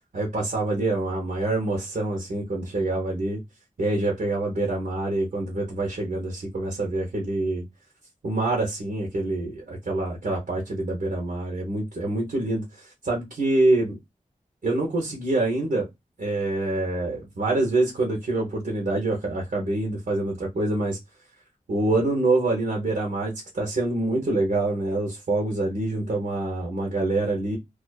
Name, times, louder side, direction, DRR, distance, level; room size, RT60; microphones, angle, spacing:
voice 1, 0.1-3.4 3.8-7.6 8.2-14.0 14.6-15.9 16.2-21.0 21.7-27.6, right 2 dB, 80° right, 0.9 m, -26 dB
2.4 x 2.3 x 2.2 m
wide cardioid pair, 85°, 14 cm